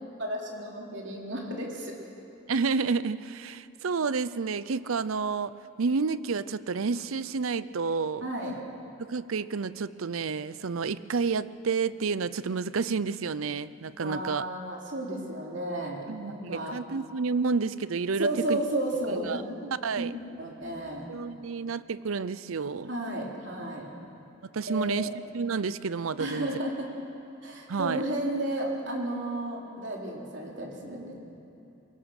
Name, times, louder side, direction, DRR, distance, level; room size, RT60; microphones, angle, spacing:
voice 1, 0.2-2.0 8.2-8.6 14.0-16.8 18.2-19.5 20.0-21.1 22.9-23.9 24.6-25.1 26.2-26.9 27.4-31.1, right 1 dB, 60° right, -1 dB, 3.7 m, -33 dB
voice 2, 2.5-8.3 9.0-14.4 16.1-18.6 19.1-20.1 21.1-22.9 24.4-25.1 25.3-26.5 27.7-28.0, right 4 dB, 85° right, 16 dB, 0.6 m, -30 dB
23.0 x 22.0 x 6.6 m, 2.9 s
head